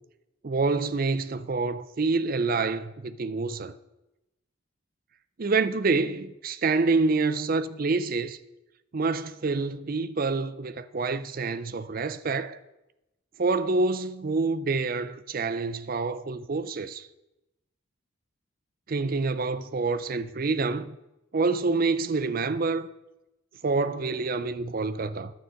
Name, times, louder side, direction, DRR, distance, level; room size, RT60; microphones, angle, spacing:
voice 1, 0.4-3.7 5.4-8.4 8.9-12.6 13.4-17.1 18.9-21.0 21.3-22.9 23.6-25.3, right 3 dB, 45° right, 0.5 m, -27 dB
10.0 x 6.3 x 7.6 m
head